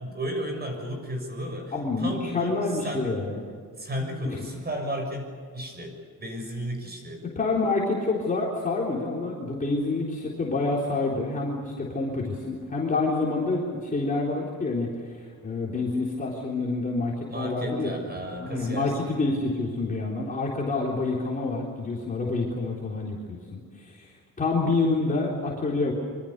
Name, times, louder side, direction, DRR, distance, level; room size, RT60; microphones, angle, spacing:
voice 1, 0.0-2.6 2.8-3.1 3.8-7.2 17.3-19.1, equal, 25° right, 4 dB, 6.6 m, -34 dB
voice 2, 1.7-3.4 4.3-4.5 7.2-17.9 18.4-25.9, left 3 dB, 25° left, -4 dB, 3.8 m, -28 dB
26.0 x 24.5 x 6.8 m, 2.1 s
cardioid pair, 160°, 35 cm